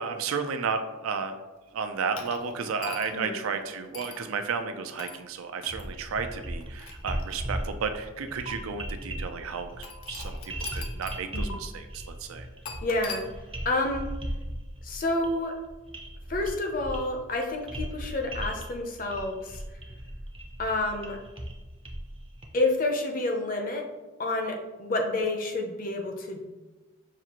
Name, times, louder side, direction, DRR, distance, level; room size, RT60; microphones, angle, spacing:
voice 1, 0.0-1.4 1.7-12.5, right 5 dB, 85° right, 7 dB, 0.4 m, -33 dB
sound 1, 2.2-3.3 3.9-4.2 5.0-5.2 5.6-5.8 6.6-7.7 8.5-8.6 9.8-11.2 11.5-11.6 12.6-13.2, left 4 dB, 90° left, 0.5 m, -41 dB
sound 2, 5.7-22.5, right 1 dB, 25° right, 0.4 m, -38 dB
voice 2, 12.8-13.2 13.6-14.0 14.8-15.5 16.3-19.6 20.6-21.2 22.5-23.8 24.2-26.5, left 2 dB, 40° left, 3 dB, 0.5 m, -29 dB
5.9 x 2.4 x 2.9 m, 1.1 s
head